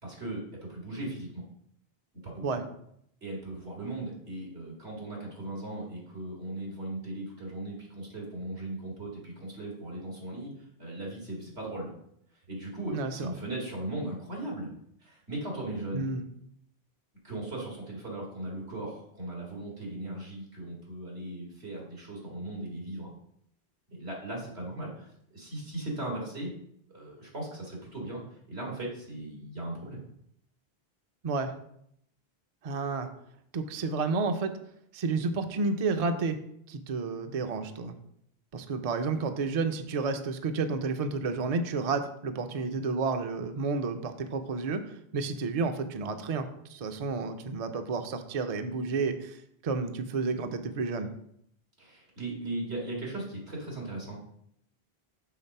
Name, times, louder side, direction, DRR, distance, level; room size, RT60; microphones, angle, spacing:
voice 1, 0.0-1.4 2.2-2.6 3.2-10.5 10.8-11.9 12.5-14.7 15.0-16.1 17.2-23.1 23.9-25.1 25.3-26.5 26.9-30.0 51.8-54.2, right 1 dB, 90° right, -3 dB, 2.3 m, -38 dB
voice 2, 12.9-13.3 15.9-16.2 31.2-31.5 32.6-33.1 33.5-34.5 34.9-36.4 36.7-37.9 38.5-44.8 45.1-46.4 46.7-49.4 49.6-51.1, right 4 dB, 45° right, 7 dB, 0.5 m, -31 dB
5.8 x 4.0 x 5.3 m, 0.72 s
omnidirectional pair, 1.1 m